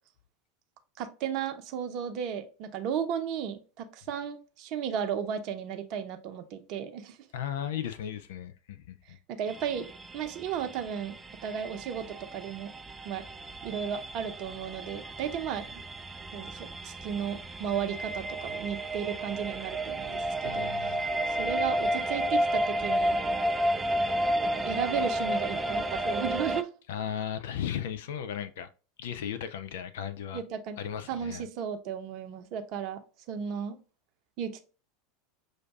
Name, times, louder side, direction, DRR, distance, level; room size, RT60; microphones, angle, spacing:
voice 1, 1.0-7.2 9.4-9.9 10.1-11.1 11.4-12.7 13.0-13.2 13.6-15.7 16.3-21.0 21.4-23.2 24.4-26.7 30.3-30.8 31.1-33.0 33.3-33.8 34.4-34.6, right 8 dB, 45° right, 0.7 m, -34 dB
voice 2, 7.3-9.2 20.4-21.1 26.9-28.7 29.0-30.4 30.8-31.4, left 9 dB, 60° left, 0.4 m, -36 dB
sound 1, 9.5-26.6, right 1 dB, 15° right, 0.4 m, -32 dB
6.3 x 2.6 x 2.3 m
figure-of-eight pair, 80°, 0 cm